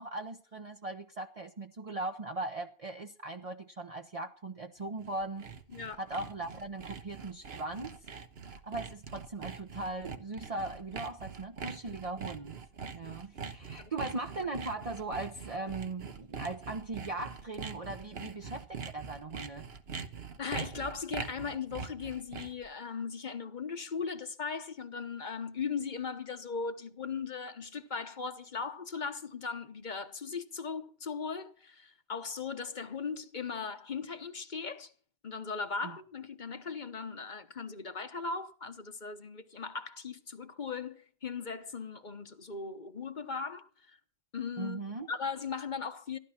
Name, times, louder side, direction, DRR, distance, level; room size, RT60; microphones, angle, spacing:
voice 1, 0.0-5.5 6.0-8.0 8.6-12.6 12.9-19.7 35.8-35.9 44.6-45.1, right 2 dB, 35° right, 0.9 m, -39 dB
Sawing, 4.8-22.7, right 5 dB, 80° right, 1.4 m, -43 dB
voice 2, 5.7-6.0 13.1-13.2 13.8-13.9 20.4-34.9 35.2-44.0 44.3-44.8 45.1-46.2, left 5 dB, 50° left, 1.1 m, -38 dB
15.5 x 11.5 x 5.8 m
omnidirectional pair, 1.0 m